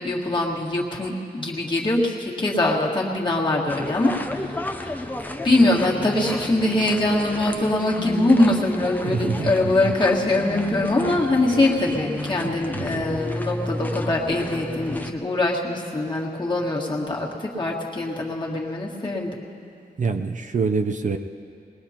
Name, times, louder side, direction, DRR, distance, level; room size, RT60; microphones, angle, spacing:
voice 1, 0.0-5.1 5.4-19.4, left 2 dB, 25° left, -3 dB, 1.8 m, -23 dB
sound 1, 3.7-15.1, left 1 dB, 10° left, 0.5 m, -32 dB
voice 2, 9.0-9.9 12.7-13.0 20.0-21.2, right 4 dB, 50° right, 6 dB, 0.5 m, -26 dB
21.0 x 20.5 x 2.9 m, 2.7 s
wide cardioid pair, 165°, 17 cm